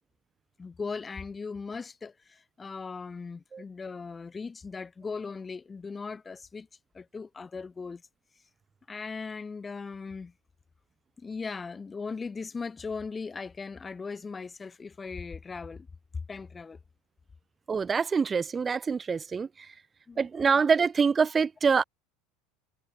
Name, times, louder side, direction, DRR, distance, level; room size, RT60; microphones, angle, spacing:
voice 1, 0.6-6.7 6.9-8.0 8.9-10.3 11.2-15.9 16.3-16.8 20.1-20.3, left 4 dB, 15° left, 5.3 m, -38 dB
voice 2, 17.7-19.5 20.2-21.8, right 5 dB, 20° right, 0.5 m, -25 dB
supercardioid pair, 135°, 0 cm